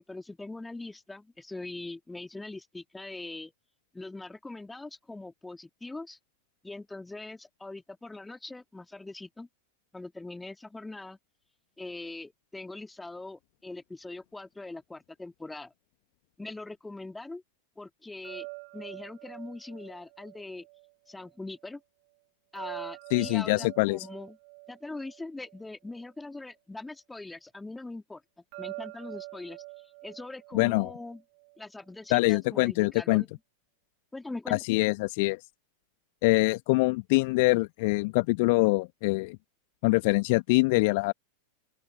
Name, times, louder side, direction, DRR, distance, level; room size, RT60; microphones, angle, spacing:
voice 1, 0.0-3.5 3.9-6.2 6.6-9.5 9.9-11.2 11.8-15.7 16.4-17.4 17.8-18.5 18.7-20.7 21.1-21.8 22.5-24.4 24.7-28.2 28.6-31.2 31.6-33.3 34.1-34.6, left 2 dB, 5° left, 3.0 m, -42 dB
sound 1, 18.2-21.3 22.6-26.1 28.5-31.6, right 39 dB, 45° right, 3.2 m, -45 dB
voice 2, 23.1-24.1 30.5-30.9 32.1-33.2 34.5-35.4 36.2-39.4 39.8-41.1, left 25 dB, 50° left, 1.6 m, -24 dB
open air
figure-of-eight pair, 90°, 0 cm